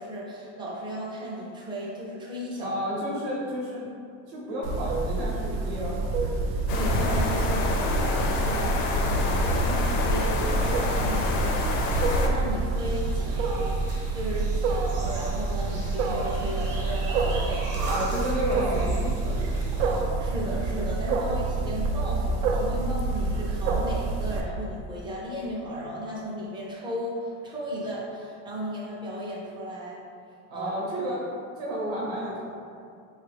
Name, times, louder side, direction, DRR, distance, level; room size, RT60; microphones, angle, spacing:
voice 1, 0.0-2.8 6.7-13.7 14.1-17.9 20.2-30.0 30.5-30.7, equal, 10° right, -5 dB, 0.4 m, -35 dB
voice 2, 2.6-3.9 4.3-6.5 17.9-19.9 30.5-31.3 31.6-32.4, equal, 60° right, -5 dB, 0.8 m, -32 dB
Wild animals, 4.6-24.4, right 3 dB, 85° right, 0.5 m, -28 dB
sound 1, 6.7-12.3, left 2 dB, 45° left, 0.4 m, -26 dB
sound 2, 12.8-20.0, right 2 dB, 35° right, 0.9 m, -38 dB
3.3 x 2.3 x 3.2 m, 2.4 s
supercardioid pair, 140°, 40 cm